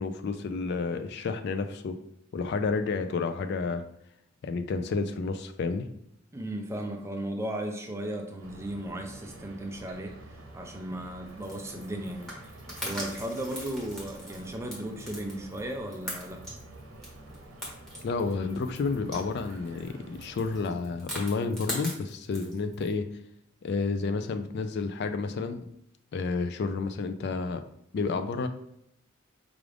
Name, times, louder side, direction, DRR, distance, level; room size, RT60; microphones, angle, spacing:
voice 1, 0.0-2.0 2.3-3.8 4.4-5.9 18.0-23.0 23.6-25.6 26.1-27.6 27.9-28.5, left 4 dB, 55° left, 8 dB, 0.3 m, -30 dB
voice 2, 6.3-10.1 10.5-12.5 12.8-16.6, right 1 dB, 15° right, 3 dB, 0.4 m, -36 dB
sound 1, 8.4-20.6, right 1 dB, 80° right, 0.8 m, -48 dB
sound 2, 11.3-22.9, equal, ahead, 1.0 m, -41 dB
4.9 x 2.4 x 3.3 m, 0.74 s
head